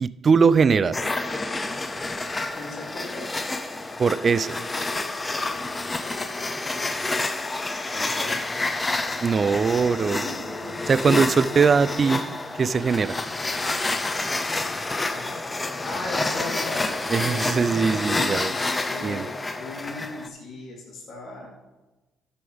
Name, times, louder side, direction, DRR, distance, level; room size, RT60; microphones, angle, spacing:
voice 1, 0.0-0.9 4.0-4.5 9.2-10.2 10.9-12.2 12.6-13.1 17.1-18.5 19.0-19.3, right 5 dB, 45° right, 17 dB, 0.4 m, -21 dB
sound 1, 0.9-20.3, left 2 dB, 25° left, 0.8 m, -29 dB
voice 2, 2.5-3.3 7.9-8.4 10.2-10.7 15.1-15.4 15.8-17.7 18.5-21.5, left 2 dB, 55° left, -3 dB, 3.5 m, -37 dB
13.0 x 6.9 x 3.5 m, 1.1 s
hypercardioid pair, 50°, 0 cm